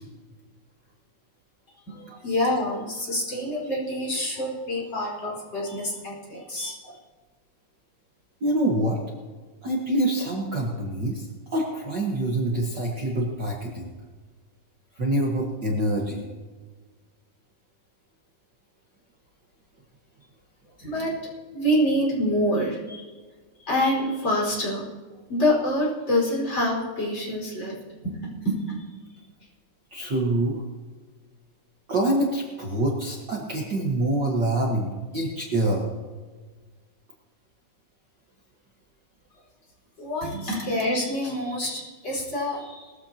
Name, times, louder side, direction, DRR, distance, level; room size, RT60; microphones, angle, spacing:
voice 1, 1.9-7.0 20.8-23.1 23.6-24.8 25.3-27.8 28.0-28.9 40.0-42.9, equal, 30° left, -4 dB, 5.2 m, -27 dB
voice 2, 8.4-9.0 9.6-11.3 11.5-13.9 15.0-16.2 29.9-30.6 31.9-35.9, right 1 dB, 70° right, -2 dB, 1.0 m, -25 dB
21.0 x 14.5 x 2.9 m, 1.4 s
omnidirectional pair, 4.5 m